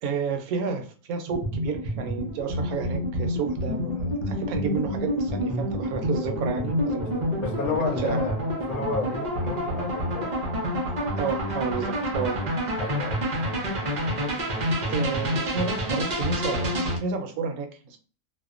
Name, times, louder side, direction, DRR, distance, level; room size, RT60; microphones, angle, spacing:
voice 1, 0.0-7.1 8.0-8.3 11.2-12.4 14.9-18.0, right 5 dB, 80° right, 1.0 m, -31 dB
sound 1, 1.3-17.0, equal, 50° right, 0.5 m, -28 dB
voice 2, 7.0-10.3 12.8-13.2, left 3 dB, 80° left, 1.1 m, -32 dB
2.7 x 2.1 x 2.4 m
omnidirectional pair, 1.5 m